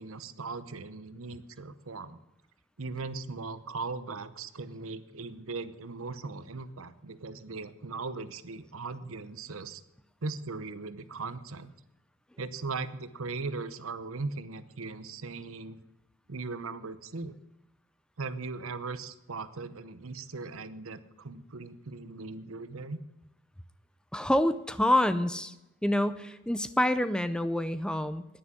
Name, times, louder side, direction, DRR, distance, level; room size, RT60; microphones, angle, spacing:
voice 1, 0.0-2.2 2.8-9.8 10.2-11.7 12.4-15.8 16.3-17.4 18.2-23.0, right 3 dB, 75° right, 14 dB, 0.9 m, -39 dB
voice 2, 24.1-25.5 25.8-28.3, left 1 dB, 5° left, 13 dB, 0.5 m, -27 dB
10.0 x 9.7 x 9.6 m, 0.95 s
head